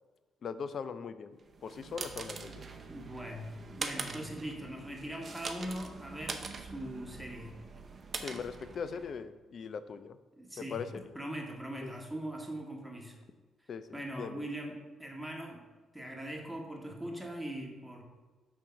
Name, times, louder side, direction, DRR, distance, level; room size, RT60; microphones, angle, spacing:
voice 1, 0.4-2.7 8.2-10.2 10.6-11.1 11.8-11.9 13.7-13.8 14.1-14.5, left 6 dB, 55° left, 12 dB, 0.4 m, -40 dB
sound 1, 1.5-9.2, right 4 dB, 40° right, 0.6 m, -43 dB
voice 2, 2.9-7.5 10.3-10.8 11.1-13.2 13.6-15.6 15.9-18.0, right 1 dB, 5° right, 0 dB, 1.4 m, -41 dB
6.3 x 3.6 x 5.7 m, 1.3 s
cardioid pair, 90°, 0 cm